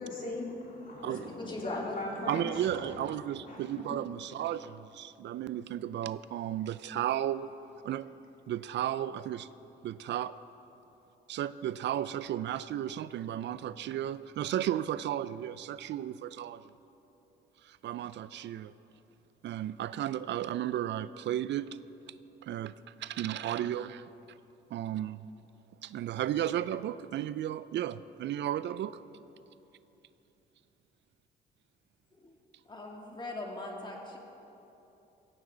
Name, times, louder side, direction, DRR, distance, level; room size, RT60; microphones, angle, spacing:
voice 1, 0.0-3.1 3.4-3.8, left 2 dB, 45° left, -3 dB, 3.6 m, -39 dB
voice 2, 1.4-2.0 32.1-32.4 32.6-34.2, left 2 dB, 25° left, -1 dB, 2.8 m, -40 dB
voice 3, 2.3-7.5 7.8-8.1 8.5-9.5 9.8-10.4 11.3-16.6 17.6-18.7 19.4-21.8 22.4-24.1 24.7-25.3 25.8-29.0, right 11 dB, 65° right, 15 dB, 0.4 m, -34 dB
16.0 x 15.5 x 3.9 m, 3.0 s
cardioid pair, 90°, 20 cm